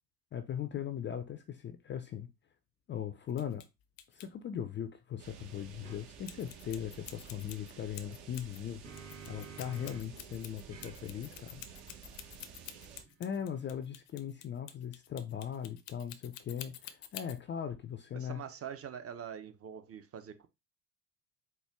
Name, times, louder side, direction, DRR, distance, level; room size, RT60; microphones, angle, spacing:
voice 1, 0.3-2.3 2.9-3.6 4.1-8.8 9.3-11.6 13.2-18.4, left 9 dB, 25° left, 0.4 m, -39 dB
sound 1, 3.3-3.7 4.0-4.3 6.3-8.6 8.9-17.4, left 12 dB, 75° left, 0.6 m, -48 dB
sound 2, 5.2-13.0, right 7 dB, 65° right, 1.3 m, -52 dB
sound 3, 5.8-6.0 8.4-10.2 10.7-14.0, right 5 dB, 85° right, 1.7 m, -53 dB
voice 2, 18.1-20.5, right 8 dB, 30° right, 0.6 m, -44 dB
4.3 x 2.2 x 3.4 m
hypercardioid pair, 65°, 48 cm